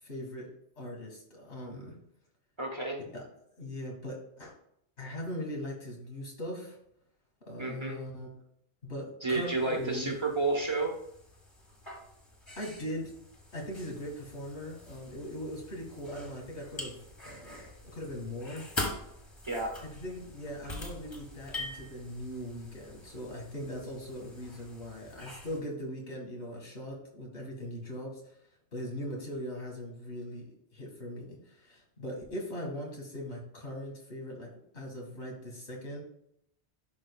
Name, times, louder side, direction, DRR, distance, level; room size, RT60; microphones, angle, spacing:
voice 1, 0.0-0.5 0.8-2.0 3.1-3.2 3.6-4.5 5.0-6.8 7.5-8.3 8.8-10.1 12.5-13.1 13.5-17.0 17.2-18.7 19.8-28.1 28.7-34.5 34.7-36.0, equal, 85° left, -1 dB, 2.2 m, -40 dB
voice 2, 2.6-3.0 7.6-8.0 9.2-10.9 19.5-19.7, right 3 dB, 25° right, 0 dB, 1.1 m, -31 dB
sound 1, 9.3-25.6, left 1 dB, 25° left, 1.5 m, -44 dB
11.0 x 5.3 x 2.3 m, 0.73 s
omnidirectional pair, 1.1 m